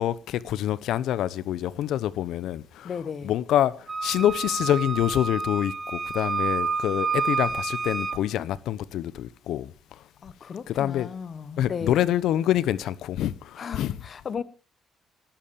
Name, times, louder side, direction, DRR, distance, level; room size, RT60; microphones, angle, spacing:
voice 1, 0.0-2.9 3.2-3.7 4.0-9.7 10.7-11.1 11.6-13.9, left 12 dB, 80° left, 0.9 m, -26 dB
voice 2, 2.8-3.3 10.2-12.1 13.6-14.4, left 6 dB, 50° left, 1.3 m, -35 dB
Wind instrument woodwind instrument, 3.9-8.2, right 4 dB, 25° right, 2.1 m, -29 dB
18.5 x 9.0 x 7.1 m
cardioid pair, 90°, 0 cm